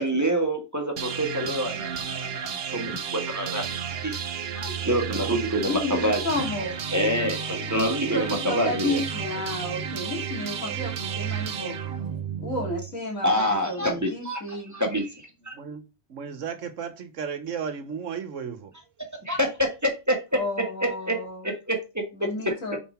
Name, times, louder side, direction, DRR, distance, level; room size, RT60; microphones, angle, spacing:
voice 1, 0.0-3.6 4.0-4.2 4.6-6.2 6.9-9.0 13.2-15.5 19.2-20.1 20.8-21.1 21.4-22.0 22.4-22.5, equal, 15° right, 1.5 m, -27 dB
sound 1, 1.0-12.9, right 7 dB, 55° right, 0.9 m, -32 dB
voice 2, 5.6-6.7 8.1-11.8 12.4-14.7 20.3-21.4 22.2-22.8, left 2 dB, 90° left, 2.7 m, -32 dB
voice 3, 13.8-14.1 14.7-14.8 15.5-18.7, right 6 dB, 70° right, 1.4 m, -35 dB
5.7 x 5.1 x 4.3 m
omnidirectional pair, 1.4 m